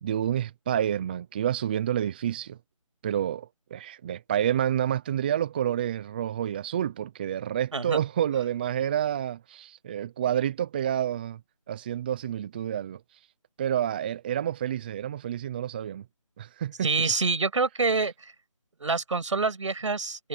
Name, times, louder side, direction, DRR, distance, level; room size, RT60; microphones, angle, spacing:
voice 1, 0.0-2.6 3.0-11.4 11.7-13.2 13.6-16.0 16.4-16.9, right 10 dB, 15° right, 0.8 m, -29 dB
voice 2, 16.8-18.3 18.8-20.3, right 4 dB, 60° right, 6.7 m, -26 dB
figure-of-eight pair, 165°, 18 cm